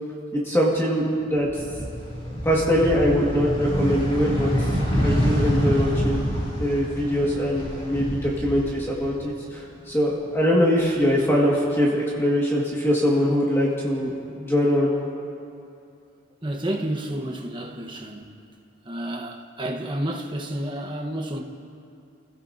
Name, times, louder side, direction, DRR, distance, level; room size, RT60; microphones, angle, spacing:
voice 1, 0.3-1.6 2.4-4.7 5.0-6.2 6.5-14.9, equal, 10° left, -5 dB, 1.9 m, -22 dB
sound 1, 1.3-9.5 9.8-11.0, equal, 30° left, 3.0 m, -26 dB
voice 2, 16.4-18.3 18.8-21.4, right 1 dB, 25° right, 0 dB, 1.2 m, -30 dB
29.5 x 16.5 x 2.8 m, 2.6 s
head